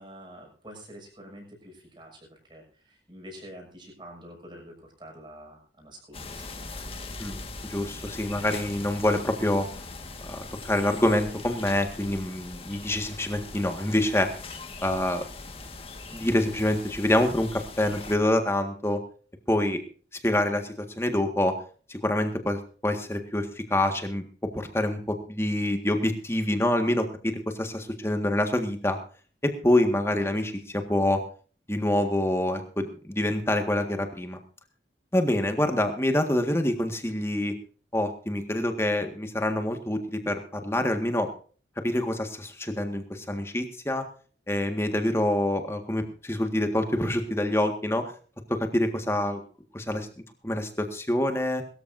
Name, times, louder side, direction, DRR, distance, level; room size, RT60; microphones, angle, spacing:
voice 1, 0.0-6.7, equal, 25° right, 1 dB, 6.5 m, -47 dB
sound 1, 6.1-18.2, left 3 dB, 30° left, 1.7 m, -41 dB
voice 2, 7.2-9.7 10.3-14.3 14.8-15.2 16.1-19.0 19.5-19.8 20.2-21.6 21.9-24.2 24.5-29.0 29.4-31.2 31.7-34.4 35.1-37.5 37.9-41.3 41.8-44.0 44.5-48.1 48.5-49.4 49.7-50.1 50.4-51.6, left 1 dB, 15° left, 5 dB, 1.7 m, -26 dB
22.0 x 13.5 x 2.7 m, 0.41 s
head